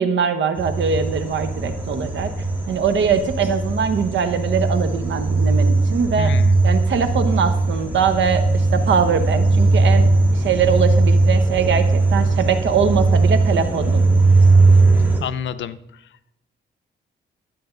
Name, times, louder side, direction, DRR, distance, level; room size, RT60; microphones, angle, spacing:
voice 1, 0.0-2.3 2.7-6.3 6.6-14.1, right 6 dB, 70° right, 9 dB, 1.1 m, -22 dB
sound 1, 0.6-15.2, right 3 dB, 10° right, 2.1 m, -18 dB
voice 2, 6.2-6.6 15.2-16.1, left 8 dB, 70° left, 13 dB, 0.6 m, -29 dB
12.5 x 8.5 x 3.9 m, 0.85 s
cardioid pair, 115°, 20 cm